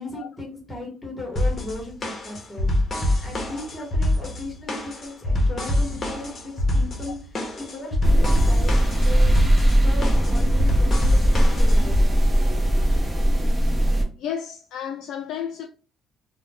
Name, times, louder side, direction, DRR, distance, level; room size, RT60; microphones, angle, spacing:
voice 1, 0.0-2.7 3.2-7.2 7.6-9.4 9.7-12.0, left 2 dB, 15° left, 1.2 m, -36 dB
sound 1, 1.4-12.0, left 1 dB, 30° left, 0.7 m, -25 dB
sound 2, 8.0-14.0, right 1 dB, 15° right, 0.6 m, -19 dB
voice 2, 14.2-15.7, left 8 dB, 75° left, 0.3 m, -32 dB
2.4 x 2.1 x 3.3 m
cardioid pair, 140°, 0 cm